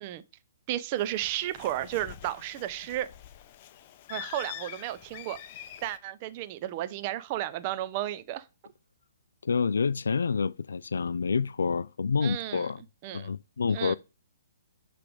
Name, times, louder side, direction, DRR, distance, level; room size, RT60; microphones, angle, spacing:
voice 1, 0.7-3.1 4.1-5.4 5.8-8.4 12.2-12.7 13.0-13.3 13.7-13.9, right 13 dB, 35° right, 0.7 m, -33 dB
Bird, 1.0-6.0, left 11 dB, 40° left, 0.7 m, -45 dB
voice 2, 9.4-12.8 13.1-13.9, left 5 dB, 90° left, 0.3 m, -28 dB
9.8 x 3.3 x 5.1 m
hypercardioid pair, 150°, 0 cm